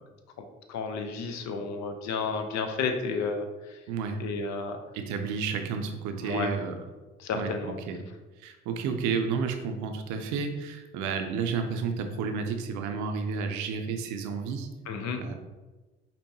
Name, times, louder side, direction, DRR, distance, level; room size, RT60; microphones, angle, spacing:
voice 1, 0.7-3.4 4.2-4.8 6.2-6.5 7.2-7.7 14.9-15.2, left 5 dB, 65° left, 5 dB, 0.6 m, -31 dB
voice 2, 3.9-4.2 4.9-6.8 7.3-8.1 8.4-14.7 15.2-15.3, right 5 dB, 80° right, 6 dB, 0.5 m, -31 dB
5.2 x 2.1 x 2.7 m, 1.2 s
hypercardioid pair, 50°, 29 cm